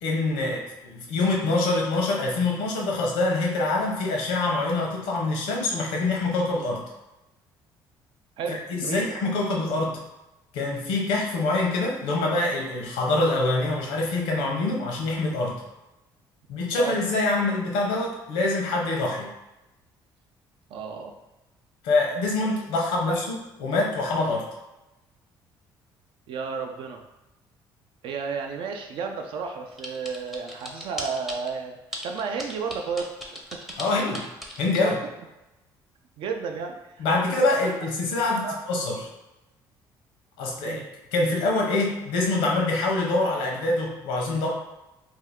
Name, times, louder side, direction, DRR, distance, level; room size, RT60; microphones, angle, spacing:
voice 1, 0.0-6.8 8.5-10.0 10.5-15.6 16.5-19.3 21.8-24.5 33.8-34.3 34.6-35.0 37.0-39.0 40.4-40.8 41.1-44.5, left 2 dB, 90° left, 0 dB, 0.7 m, -25 dB
voice 2, 8.4-9.1 16.8-17.0 20.7-21.2 23.1-23.2 26.3-27.0 28.0-31.8 32.0-33.6 34.1-34.3 34.8-34.9 36.2-37.1 37.6-37.7 38.4-38.6 40.6-40.8, right 5 dB, 70° right, 4 dB, 0.4 m, -32 dB
sound 1, 29.8-31.5 31.9-34.9, equal, 5° right, 0.5 m, -37 dB
2.6 x 2.3 x 3.5 m, 0.98 s
cardioid pair, 90°, 9 cm